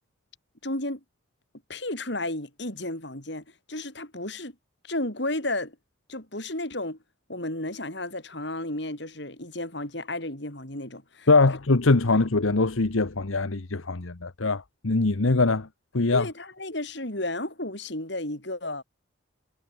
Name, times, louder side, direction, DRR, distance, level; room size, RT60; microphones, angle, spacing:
voice 1, 0.6-1.0 1.7-4.6 4.8-5.8 6.1-7.0 7.3-11.3 12.1-12.2 16.1-18.8, left 1 dB, 60° left, 5.3 m, -33 dB
voice 2, 11.3-15.7 15.9-16.3, left 3 dB, 85° left, 1.1 m, -22 dB
head